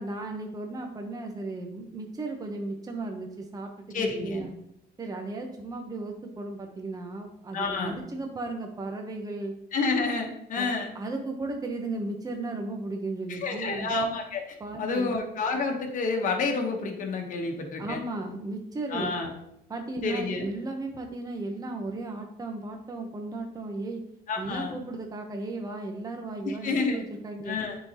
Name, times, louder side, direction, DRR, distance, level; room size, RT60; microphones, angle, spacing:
voice 1, 0.0-4.5 5.0-9.6 10.6-10.7 10.9-13.9 14.6-15.1 17.8-19.2 19.7-24.0 24.4-27.6, right 2 dB, 20° right, 3 dB, 0.9 m, -35 dB
voice 2, 3.9-4.5 7.5-8.0 9.7-10.9 13.3-18.0 18.9-19.3 20.0-20.5 24.3-24.8 26.4-27.0 27.4-27.8, left 3 dB, 50° left, 2 dB, 1.1 m, -29 dB
9.5 x 3.9 x 2.9 m, 0.79 s
cardioid pair, 110°, 17 cm